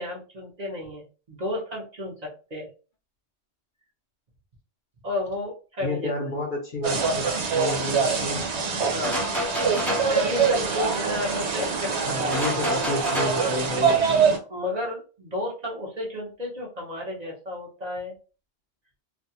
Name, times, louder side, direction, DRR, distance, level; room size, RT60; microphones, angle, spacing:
voice 1, 0.0-2.7 5.0-6.3 8.9-12.7 14.3-18.1, left 2 dB, 40° right, -2 dB, 0.9 m, -33 dB
voice 2, 5.8-7.3 7.5-8.4 12.0-14.3, left 2 dB, 55° left, 1 dB, 0.7 m, -30 dB
sound 1, 6.8-14.4, right 5 dB, 80° right, 1.0 m, -24 dB
sound 2, 9.0-10.2 12.3-13.5, left 1 dB, ahead, 0.6 m, -29 dB
2.6 x 2.3 x 2.7 m, 0.34 s
omnidirectional pair, 1.1 m